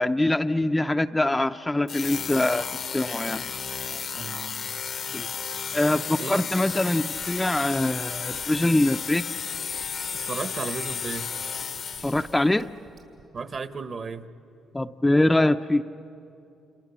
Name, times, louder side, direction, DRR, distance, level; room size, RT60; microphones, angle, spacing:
voice 1, 0.0-2.6 2.9-3.5 3.9-4.0 5.1-5.3 5.7-9.2 12.0-12.7 14.7-15.8, left 1 dB, 10° left, 0.6 m, -23 dB
sound 1, 1.9-12.4, left 6 dB, 50° left, 0.8 m, -33 dB
voice 2, 4.1-4.7 6.2-6.4 10.2-11.3 13.3-14.3, right 4 dB, 45° right, 1.3 m, -34 dB
sound 2, 7.1-13.6, right 6 dB, 70° right, 5.0 m, -51 dB
28.5 x 28.5 x 7.2 m
cardioid pair, 90°, 0 cm